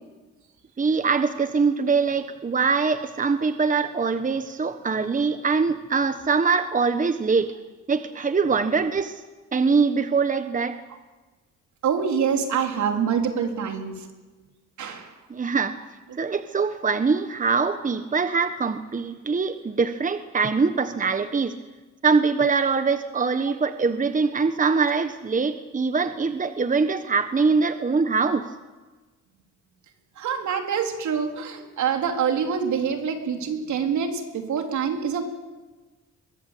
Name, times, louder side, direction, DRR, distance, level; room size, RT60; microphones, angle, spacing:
voice 1, 0.8-7.5 7.9-9.2 9.5-10.8 15.3-15.8 16.2-21.6 22.0-28.5, right 5 dB, 25° right, 10 dB, 1.2 m, -23 dB
voice 2, 11.8-13.9 14.8-15.1 30.2-35.2, right 7 dB, 70° right, 4 dB, 4.0 m, -25 dB
23.5 x 20.5 x 8.4 m, 1.2 s
cardioid pair, 90°, 30 cm